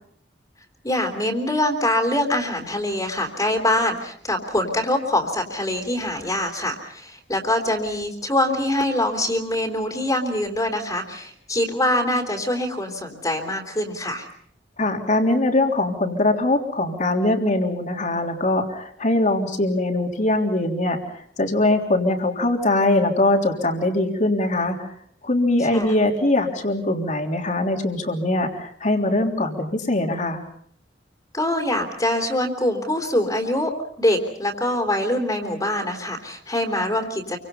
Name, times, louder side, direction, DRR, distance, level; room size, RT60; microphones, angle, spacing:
voice 1, 0.8-14.3 25.7-25.9 31.3-33.7 34.0-37.4, left 1 dB, 20° left, 3 dB, 3.4 m, -24 dB
voice 2, 14.8-21.0 21.4-24.9 25.2-30.4, left 2 dB, 45° left, 3 dB, 3.4 m, -22 dB
28.0 x 25.0 x 5.6 m, 0.63 s
head